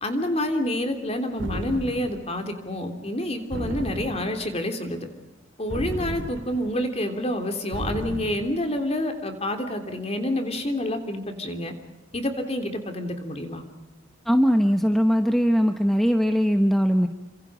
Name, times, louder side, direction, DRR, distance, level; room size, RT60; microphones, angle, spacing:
voice 1, 0.0-5.1 5.6-11.7 12.1-13.6, left 1 dB, 30° left, 6 dB, 3.3 m, -28 dB
sound 1, 1.4-2.3 3.5-4.5 5.7-6.7 7.7-8.6, equal, 70° right, 3.0 m, -33 dB
voice 2, 14.3-17.1, equal, ahead, 6 dB, 1.0 m, -20 dB
29.5 x 25.5 x 5.0 m, 1.1 s
head